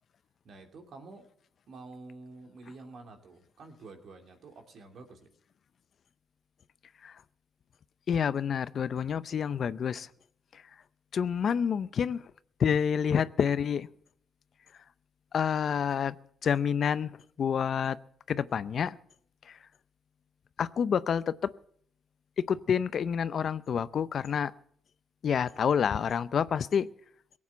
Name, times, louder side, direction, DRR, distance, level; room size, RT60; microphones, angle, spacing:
voice 1, 0.4-1.2 1.7-5.3, right 3 dB, 60° right, 2.8 m, -49 dB
voice 2, 8.1-10.1 10.5-10.6 11.1-12.2 12.6-13.9 15.3-16.2 16.4-17.1 17.4-18.0 18.3-18.9 19.5-19.6 20.6-21.5 22.5-24.5 25.2-26.9, left 7 dB, 55° left, 0.6 m, -28 dB
18.0 x 8.5 x 8.2 m
cardioid pair, 90°, 0 cm